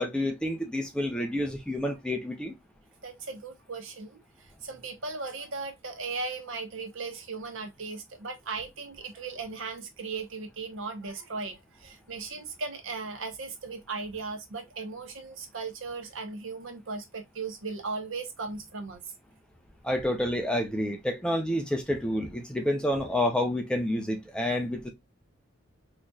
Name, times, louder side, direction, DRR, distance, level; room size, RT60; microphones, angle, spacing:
voice 1, 0.0-2.5 19.8-24.9, left 1 dB, 5° left, 0.5 m, -29 dB
voice 2, 3.0-4.2 4.6-19.1, right 4 dB, 65° right, 0.9 m, -37 dB
4.0 x 3.0 x 2.3 m
head